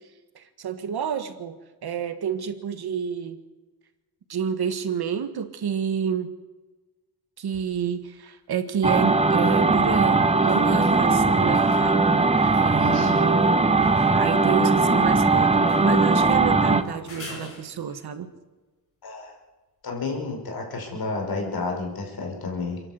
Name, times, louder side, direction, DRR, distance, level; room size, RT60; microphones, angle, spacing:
voice 1, 0.4-1.6 1.8-3.4 4.3-6.3 7.4-12.1 12.6-13.4 14.1-18.3, right 7 dB, 80° right, 9 dB, 1.7 m, -29 dB
sound 1, 7.5-7.6 8.9-18.1 21.5-21.6, left 1 dB, 35° left, 7.7 m, -43 dB
sound 2, 8.8-16.8, right 3 dB, 15° right, 1.0 m, -19 dB
voice 2, 19.0-19.3 19.8-22.8, left 3 dB, 70° left, 1 dB, 5.5 m, -31 dB
29.5 x 11.0 x 8.2 m, 1.2 s
wide cardioid pair, 140°, 38 cm